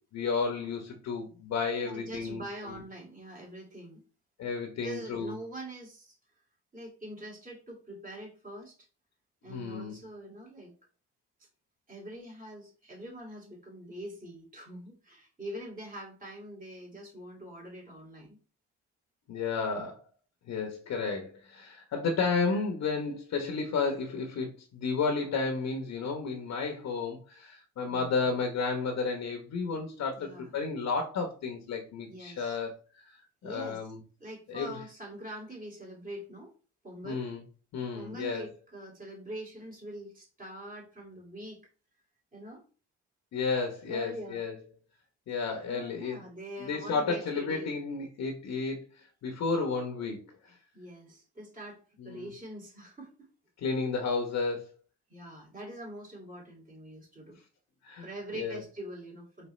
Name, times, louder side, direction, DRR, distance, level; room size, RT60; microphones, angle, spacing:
voice 1, 0.1-2.4 4.4-5.3 9.5-9.9 19.3-20.0 20.5-32.7 33.0-33.2 33.4-34.0 34.5-34.8 37.0-37.4 37.7-38.4 43.3-44.5 45.3-46.2 46.7-50.2 50.4-50.6 52.0-52.3 53.6-54.7 57.8-58.6, left 4 dB, 65° left, 3 dB, 1.0 m, -32 dB
voice 2, 1.8-4.0 4.8-6.2 6.7-8.8 9.4-10.7 11.9-18.4 27.8-28.3 30.1-30.5 32.1-32.6 33.4-33.8 34.2-36.5 36.8-37.3 37.8-41.7 42.3-42.6 43.9-44.4 45.6-47.7 50.7-53.3 55.1-57.4 58.0-59.5, right 1 dB, 30° right, -3 dB, 2.2 m, -44 dB
4.3 x 3.2 x 3.1 m, 0.37 s
cardioid pair, 90°, 30 cm